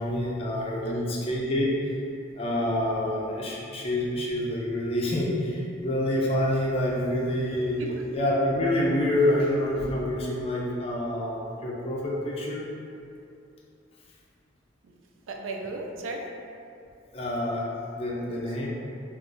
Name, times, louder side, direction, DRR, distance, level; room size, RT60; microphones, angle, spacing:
voice 1, 0.0-2.0 2.3-7.8 8.1-12.6 17.1-18.7, left 1 dB, 30° left, -3 dB, 0.4 m, -27 dB
voice 2, 0.9-1.3 7.8-8.1 14.8-14.9 15.3-16.3 18.3-18.4, right 2 dB, 85° right, 2 dB, 0.4 m, -37 dB
2.5 x 2.4 x 3.6 m, 2.6 s
head